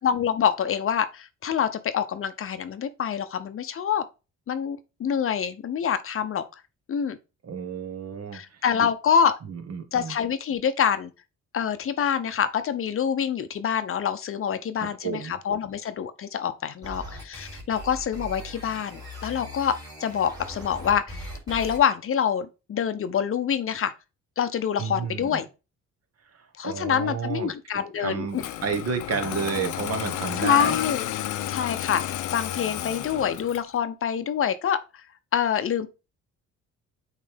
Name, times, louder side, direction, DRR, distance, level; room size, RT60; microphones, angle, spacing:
voice 1, 0.0-4.0 4.5-6.4 6.9-7.2 8.3-9.3 9.9-11.1 11.5-23.9 24.4-25.5 26.6-28.4 30.4-31.0 31.5-34.8 35.3-35.9, left 8 dB, 45° left, 0.6 m, -26 dB
voice 2, 7.4-8.9 9.4-10.1 14.8-15.4 24.8-25.4 26.3-30.8, right 6 dB, 55° right, 1.2 m, -31 dB
sound 1, 16.8-21.8, equal, 10° right, 3.2 m, -39 dB
Engine starting, 28.4-33.7, left 13 dB, 85° left, 0.6 m, -31 dB
8.5 x 3.2 x 3.4 m
cardioid pair, 90°, 30 cm